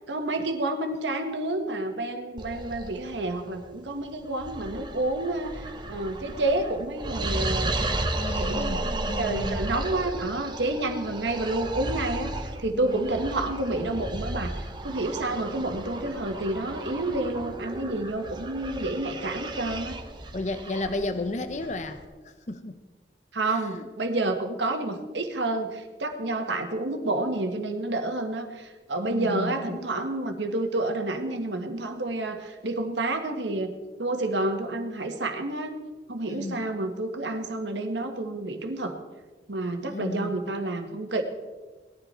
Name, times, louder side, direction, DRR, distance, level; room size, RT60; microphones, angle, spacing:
voice 1, 0.0-7.8 8.4-20.0 23.3-33.7 34.0-35.7 36.1-39.0 39.5-41.2, right 2 dB, 85° right, 5 dB, 1.6 m, -29 dB
sound 1, 2.4-22.0, right 2 dB, 25° right, 1.1 m, -34 dB
voice 2, 8.2-9.6 12.7-13.0 20.3-22.8 23.4-23.9 29.1-29.8 36.3-36.6 39.8-40.3, left 2 dB, 40° left, 9 dB, 0.9 m, -33 dB
19.5 x 13.5 x 4.4 m, 1.3 s
head